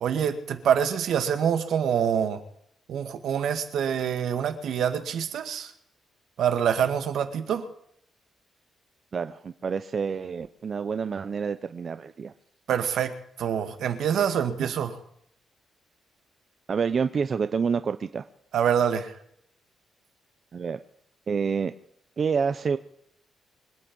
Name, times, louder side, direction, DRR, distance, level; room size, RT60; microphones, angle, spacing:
voice 1, 0.0-2.4 2.9-5.7 6.4-7.7 12.7-15.0 18.5-19.1, right 8 dB, 70° right, 8 dB, 2.0 m, -26 dB
voice 2, 9.1-12.3 16.7-18.2 20.5-20.8 21.3-21.7 22.2-22.8, right 6 dB, 35° right, 11 dB, 0.6 m, -28 dB
25.0 x 9.0 x 5.3 m, 0.70 s
cardioid pair, 155°, 0 cm